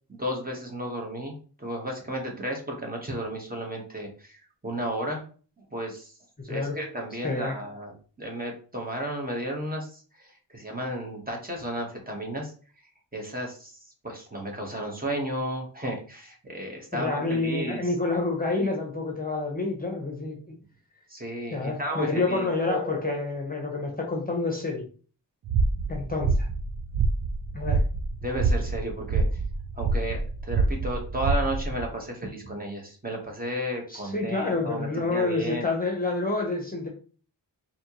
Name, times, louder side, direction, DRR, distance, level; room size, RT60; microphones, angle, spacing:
voice 1, 0.1-5.2 5.7-6.1 6.4-12.5 13.1-18.5 21.1-23.2 28.2-29.4 29.8-35.7, right 1 dB, 20° right, 0 dB, 1.2 m, -33 dB
voice 2, 7.2-7.6 16.9-20.6 21.5-24.8 25.9-26.5 27.5-27.8 33.9-36.9, left 3 dB, 20° left, 1 dB, 0.8 m, -28 dB
sound 1, 25.5-31.9, right 3 dB, 50° right, 0.6 m, -26 dB
4.2 x 2.9 x 3.0 m, 0.40 s
wide cardioid pair, 100°, 43 cm